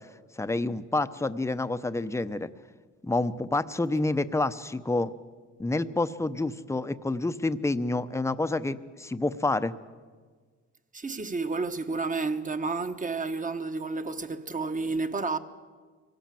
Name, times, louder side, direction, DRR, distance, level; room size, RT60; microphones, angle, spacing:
voice 1, 0.4-2.5 3.0-5.1 5.6-9.7, left 2 dB, 10° left, 0.8 m, -28 dB
voice 2, 10.9-15.4, right 3 dB, 25° right, 1.3 m, -31 dB
24.0 x 17.5 x 7.7 m
cardioid pair, 90°, 30 cm